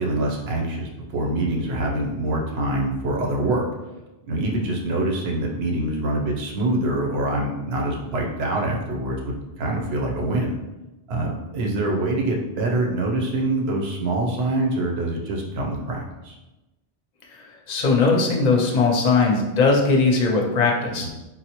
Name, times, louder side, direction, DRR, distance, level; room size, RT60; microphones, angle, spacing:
voice 1, 0.0-3.7 4.3-10.6 11.1-16.4 21.0-21.1, right 1 dB, 75° right, 0 dB, 0.9 m, -25 dB
voice 2, 17.3-21.1, left 4 dB, 50° left, 0 dB, 0.6 m, -20 dB
4.0 x 2.0 x 2.8 m, 1.0 s
omnidirectional pair, 1.1 m